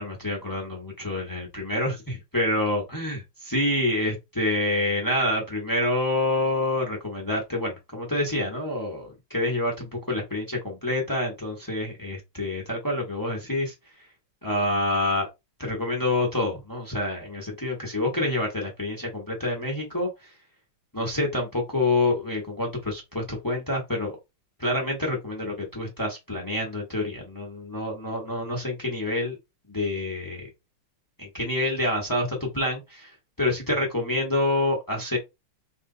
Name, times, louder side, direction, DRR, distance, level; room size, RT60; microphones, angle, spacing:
voice 1, 0.0-13.7 14.4-15.3 15.6-20.3 20.9-24.2 24.6-29.4 29.7-30.5 31.2-35.2, left 1 dB, 25° left, 0.4 m, -27 dB
3.2 x 2.8 x 3.7 m
omnidirectional pair, 2.4 m